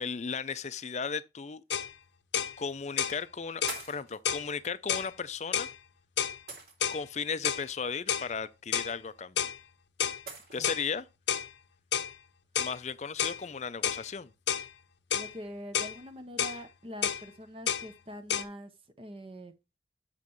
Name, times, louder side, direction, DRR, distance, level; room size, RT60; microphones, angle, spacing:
voice 1, 0.0-1.6 2.6-3.6 3.9-5.7 6.9-9.5 10.5-11.1 12.6-14.3, left 5 dB, 35° left, 0.4 m, -35 dB
sound 1, 1.7-1.9 2.3-2.6 3.0-3.2 3.6-3.8 4.3-4.5 4.9-5.1 5.5-5.7 6.2-6.4 6.8-7.0 7.4-7.7 8.1-8.3 8.7-8.9 9.4-9.6 10.0-10.2 10.6-10.9 11.3-11.5 11.9-12.1 12.6-12.8 13.2-13.4 13.8-14.0 14.5-14.7 15.1-15.3 15.7-16.0 16.4-16.6 17.0-17.2 17.7-17.9 18.3-18.4, left 8 dB, 70° left, 0.7 m, -30 dB
sound 2, 1.7-1.8 2.8-3.1 3.7-4.2 5.5-5.7 6.5-7.1 9.1-9.2 10.3-10.6, right 3 dB, 55° right, 2.2 m, -43 dB
voice 2, 15.1-18.7 19.0-19.6, equal, 30° right, 0.7 m, -44 dB
7.4 x 6.7 x 3.0 m
head